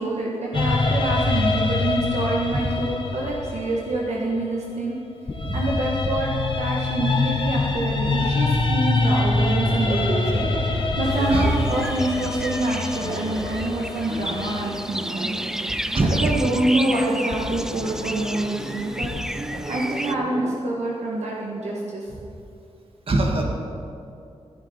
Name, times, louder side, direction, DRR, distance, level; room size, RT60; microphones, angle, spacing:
voice 1, 0.0-4.9 5.5-15.3 16.0-19.1 19.7-22.1, right 1 dB, 75° right, -3 dB, 1.6 m, -26 dB
sound 1, 0.5-4.8 5.3-15.3 17.3-19.2, left 3 dB, 45° left, 1.4 m, -25 dB
Laughter, 9.7-20.6, right 2 dB, 30° right, 0.8 m, -35 dB
sound 2, 11.0-20.1, right 1 dB, 5° right, 0.4 m, -33 dB
voice 2, 15.9-16.3 23.1-23.4, right 2 dB, 55° right, 1 dB, 2.1 m, -22 dB
14.5 x 11.5 x 4.4 m, 2.6 s
wide cardioid pair, 90°, 11 cm